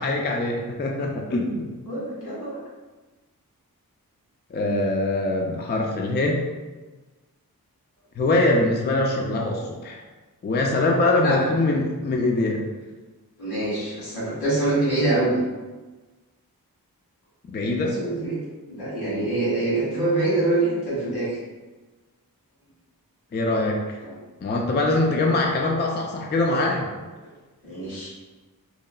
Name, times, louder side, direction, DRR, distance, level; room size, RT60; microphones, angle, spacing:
voice 1, 0.0-1.7 4.5-6.4 8.2-10.0 10.4-12.6 17.5-18.0 23.3-23.8 24.4-26.9, left 2 dB, 30° left, 0 dB, 0.4 m, -23 dB
voice 2, 1.8-2.6 11.2-11.4 13.4-15.3 17.6-17.7 18.0-18.4 18.7-21.4 24.0-24.1 27.6-28.1, right 2 dB, 80° left, -8 dB, 1.4 m, -25 dB
2.9 x 2.3 x 2.3 m, 1.3 s
cardioid pair, 40°, 37 cm